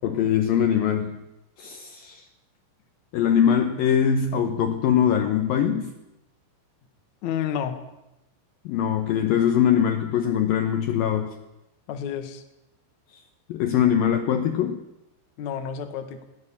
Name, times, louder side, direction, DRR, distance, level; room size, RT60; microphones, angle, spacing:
voice 1, 0.0-1.2 1.6-2.2 3.1-5.9 8.7-11.3 13.5-14.8, left 9 dB, 75° left, 6 dB, 2.1 m, -22 dB
voice 2, 7.2-7.8 11.9-12.4 15.4-16.3, left 8 dB, 60° left, 7 dB, 2.1 m, -30 dB
21.0 x 17.0 x 7.4 m, 0.93 s
omnidirectional pair, 5.7 m